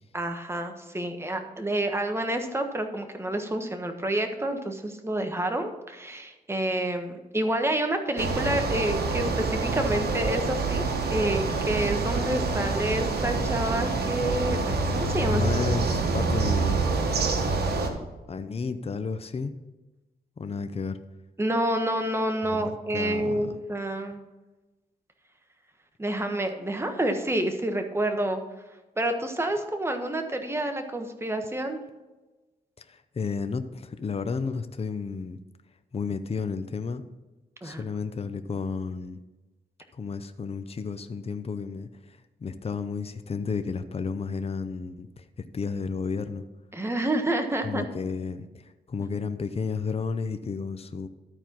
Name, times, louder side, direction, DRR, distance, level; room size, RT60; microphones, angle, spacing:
voice 1, 0.1-10.8 11.1-15.7 21.4-24.2 26.0-28.4 29.0-31.8 37.6-37.9 46.7-47.8, right 1 dB, 15° right, 5 dB, 1.3 m, -28 dB
sound 1, 8.2-17.9, right 3 dB, 75° right, 1.4 m, -26 dB
voice 2, 15.3-16.9 18.3-19.5 20.4-21.0 22.4-22.6 22.9-23.4 32.9-35.4 35.9-37.0 37.6-39.2 39.9-41.9 42.4-45.2 45.5-46.4 47.6-51.1, left 5 dB, 35° left, 10 dB, 0.7 m, -32 dB
13.0 x 4.4 x 6.0 m, 1.1 s
cardioid pair, 85°, 17 cm